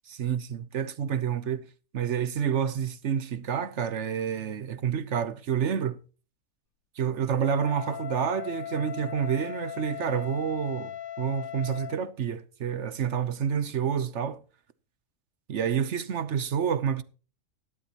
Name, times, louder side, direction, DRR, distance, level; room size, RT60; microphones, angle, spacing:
voice 1, 0.1-1.6 1.9-6.0 7.0-10.9 11.2-14.4 15.5-17.0, right 8 dB, 60° right, 1.0 m, -28 dB
Wind instrument woodwind instrument, 7.4-12.0, left 11 dB, 50° left, 0.7 m, -38 dB
17.0 x 11.5 x 2.9 m
omnidirectional pair, 1.5 m